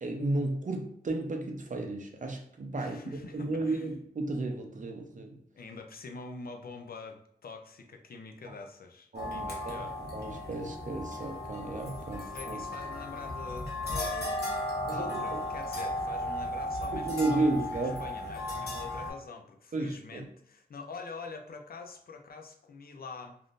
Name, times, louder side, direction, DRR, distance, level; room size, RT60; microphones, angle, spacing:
voice 1, 0.0-5.4 9.1-9.8 10.1-12.6 14.9-15.4 16.9-18.0 19.7-20.3, right 2 dB, 55° right, 3 dB, 0.6 m, -33 dB
voice 2, 2.7-3.9 5.5-10.0 12.2-17.4 17.7-23.4, left 4 dB, 70° left, 4 dB, 0.5 m, -45 dB
sound 1, 9.1-19.1, left 1 dB, 90° left, 1.0 m, -35 dB
3.5 x 2.5 x 2.5 m, 0.70 s
wide cardioid pair, 80°, 16 cm